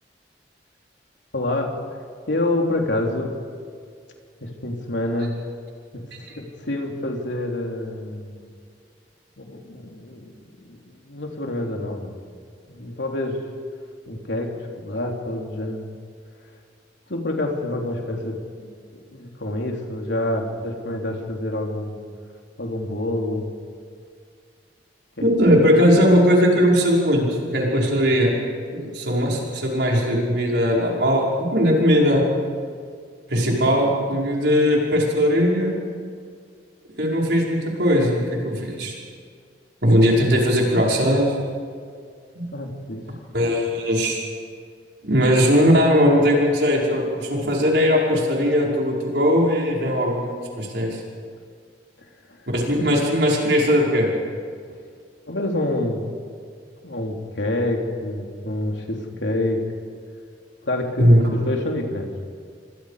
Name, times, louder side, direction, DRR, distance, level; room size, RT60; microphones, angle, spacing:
voice 1, 1.3-1.7 2.3-3.3 4.4-5.4 5.9-6.0 6.4-8.4 9.4-10.3 10.7-12.2 12.7-13.4 14.1-15.9 17.1-22.0 22.6-23.5 25.2-25.3 38.6-38.7 42.5-43.0 52.3-52.4 55.3-56.0 56.8-59.6 60.6-62.2, left 1 dB, 85° left, 1 dB, 3.5 m, -27 dB
voice 2, 25.2-28.3 28.7-32.2 33.3-35.8 37.0-38.9 39.8-41.3 42.3-42.4 43.3-44.2 45.0-51.0 52.5-54.1 61.0-61.3, equal, 70° right, -3 dB, 5.6 m, -19 dB
29.0 x 24.5 x 5.1 m, 2.1 s
head